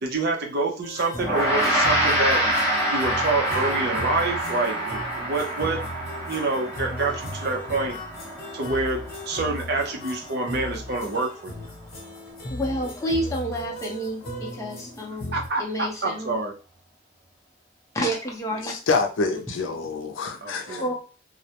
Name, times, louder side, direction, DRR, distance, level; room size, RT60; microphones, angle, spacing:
voice 1, 0.0-2.4 2.9-5.8 6.3-8.0 8.5-11.6 15.3-16.5 20.4-20.8, right 3 dB, 55° right, 0.6 m, -27 dB
sound 1, 0.8-15.5, left 1 dB, 50° left, 0.9 m, -37 dB
Gong, 1.2-10.7, right 1 dB, 5° right, 1.1 m, -27 dB
voice 2, 12.5-16.4 17.9-18.7 20.8-20.9, equal, 15° left, 0.6 m, -29 dB
voice 3, 18.6-20.8, left 4 dB, 85° left, 0.5 m, -26 dB
2.4 x 2.1 x 2.8 m
head